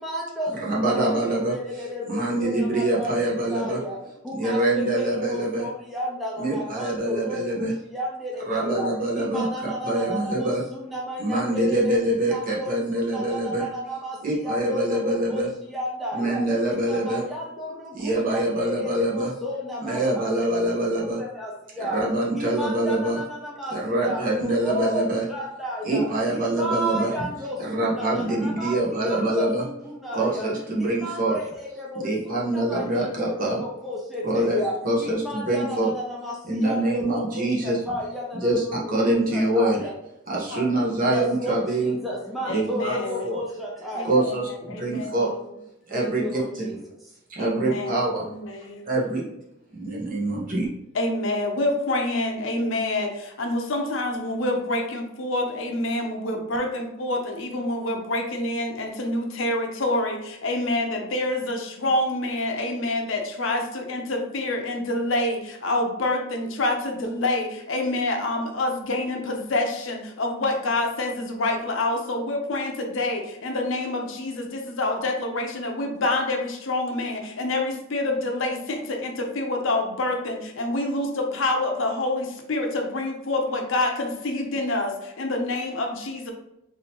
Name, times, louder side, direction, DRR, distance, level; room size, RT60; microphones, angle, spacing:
voice 1, 0.0-4.0 4.2-8.9 9.1-12.0 12.3-16.4 16.7-22.0 22.3-26.1 26.3-30.5 30.8-34.7 35.0-39.9 41.0-44.2 45.9-46.8, equal, ahead, -4 dB, 0.5 m, -33 dB
voice 2, 0.6-1.5 2.1-3.8 4.3-5.7 6.4-7.7 8.4-10.6 11.2-13.7 14.2-15.5 16.1-17.2 17.9-19.3 19.8-21.2 21.8-23.2 23.7-25.2 25.8-27.1 27.6-29.6 30.1-31.4 31.9-33.6 34.2-34.6 34.8-35.9 36.4-37.8 38.4-39.9 40.3-42.0 42.5-43.0 43.2-43.4 44.0-45.3 45.9-46.8 47.3-48.3 48.8-49.3 49.7-50.7, right 1 dB, 40° right, -5 dB, 1.1 m, -25 dB
voice 3, 40.5-41.3 42.5-43.3 44.0-45.4 47.4-48.9 50.9-86.3, left 2 dB, 65° left, 2 dB, 0.7 m, -27 dB
3.8 x 2.7 x 3.0 m, 0.84 s
head